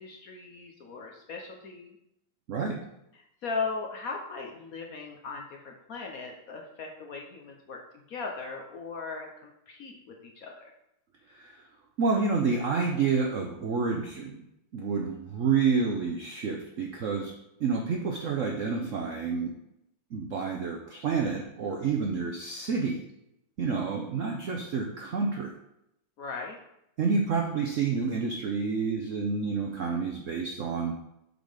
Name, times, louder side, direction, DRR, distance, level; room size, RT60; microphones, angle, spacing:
voice 1, 0.0-2.0 3.1-7.8 8.1-10.7 26.2-26.6, left 4 dB, 60° left, 1 dB, 1.0 m, -38 dB
voice 2, 2.5-2.8 11.3-11.6 12.0-14.4 14.7-17.3 17.6-19.6 20.1-23.0 23.6-25.5 27.0-31.0, right 5 dB, 70° right, 1 dB, 0.7 m, -29 dB
7.2 x 3.8 x 5.0 m, 0.81 s
omnidirectional pair, 2.2 m